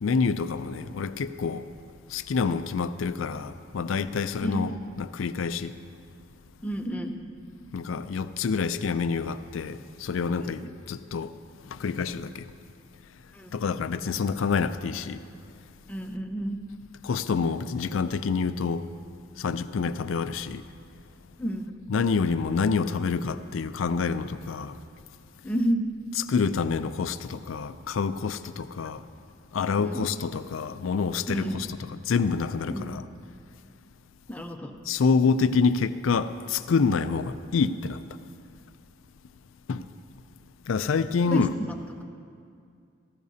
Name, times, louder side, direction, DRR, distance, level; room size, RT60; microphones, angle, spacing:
voice 1, 0.0-1.7 2.1-5.7 7.7-11.3 11.7-12.5 13.5-15.2 17.0-18.8 19.4-20.6 21.9-24.8 26.3-29.0 29.5-31.7 32.1-33.0 34.9-38.0 39.7-39.9 40.7-41.5, left 5 dB, 80° left, 0.4 m, -27 dB
voice 2, 4.4-4.7 6.6-7.2 10.4-10.6 13.3-13.5 15.9-16.6 21.4-21.7 25.4-25.8 29.8-30.1 31.3-31.6 32.7-33.0 34.3-34.7 41.3-41.4, equal, 5° left, 0.6 m, -30 dB
17.0 x 14.5 x 2.7 m
head